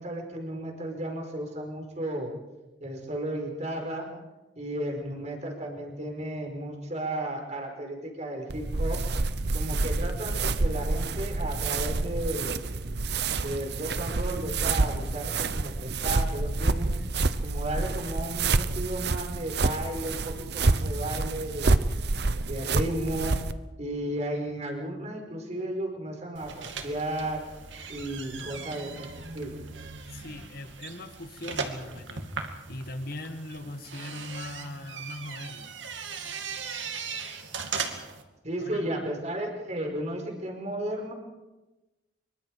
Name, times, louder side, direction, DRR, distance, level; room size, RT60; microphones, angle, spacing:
voice 1, 0.0-2.3 2.8-4.1 4.5-9.0 9.5-12.6 13.4-16.9 17.4-21.9 22.4-23.3 23.8-27.4 27.9-29.1 29.3-29.6 38.4-41.1, right 1 dB, 40° right, 2 dB, 5.0 m, -34 dB
sound 1, 8.5-23.5, right 3 dB, 60° right, 0.9 m, -28 dB
sound 2, 26.4-38.2, right 5 dB, 85° right, 2.4 m, -38 dB
voice 2, 30.1-32.3 32.7-35.7 38.6-38.8, left 1 dB, 55° left, 8 dB, 1.9 m, -40 dB
26.0 x 23.5 x 4.9 m, 1.1 s
head